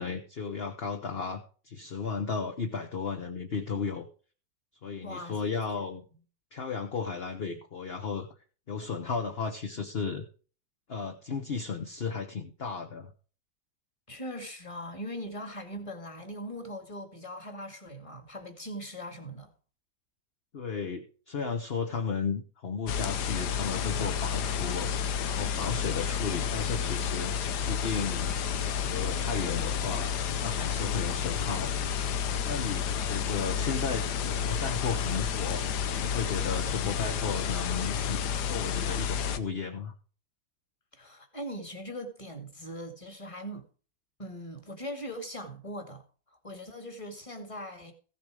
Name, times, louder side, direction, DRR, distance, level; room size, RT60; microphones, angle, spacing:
voice 1, 0.0-4.1 4.8-6.0 6.5-8.3 8.7-10.2 10.9-13.1 20.5-24.9 25.2-27.3 27.7-30.1 30.4-31.8 32.4-35.6 36.0-39.9, left 5 dB, 40° left, 1.2 m, -34 dB
voice 2, 5.0-5.4 14.1-19.5 40.9-43.7 44.2-47.9, equal, 20° left, 2.0 m, -40 dB
sound 1, 22.9-39.4, left 7 dB, 70° left, 1.4 m, -31 dB
15.5 x 7.4 x 5.0 m
omnidirectional pair, 1.9 m